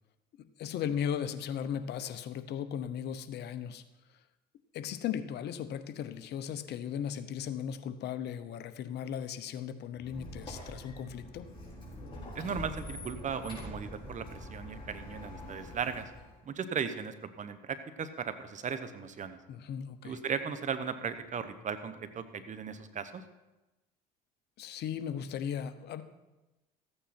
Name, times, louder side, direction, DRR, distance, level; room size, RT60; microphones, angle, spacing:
voice 1, 0.3-3.8 4.7-11.5 19.5-20.2 24.6-26.0, left 8 dB, 60° left, 12 dB, 0.9 m, -37 dB
Squeak, 9.9-16.4, left 1 dB, 25° left, 5.0 m, -45 dB
voice 2, 12.3-16.1 16.4-19.4 20.0-23.2, right 6 dB, 40° right, 10 dB, 1.1 m, -37 dB
14.5 x 8.8 x 4.4 m, 1.0 s
supercardioid pair, 85°, 19 cm